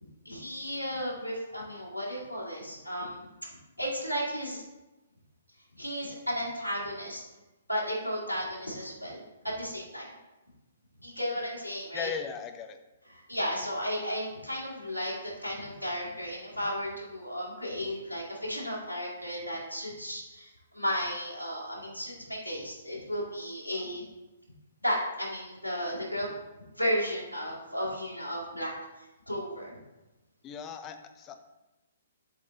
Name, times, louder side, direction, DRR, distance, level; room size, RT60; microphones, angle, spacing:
voice 1, 0.3-3.3 3.8-4.6 5.8-7.2 7.7-9.2 9.6-10.1 11.0-12.1 13.1-24.0 24.8-26.3 26.8-28.7 29.0-29.8, equal, 90° right, -5 dB, 2.1 m, -34 dB
voice 2, 11.9-12.8 30.4-31.4, left 6 dB, 20° left, 7 dB, 0.6 m, -37 dB
7.6 x 3.7 x 4.1 m, 1.0 s
figure-of-eight pair, 120°, 0 cm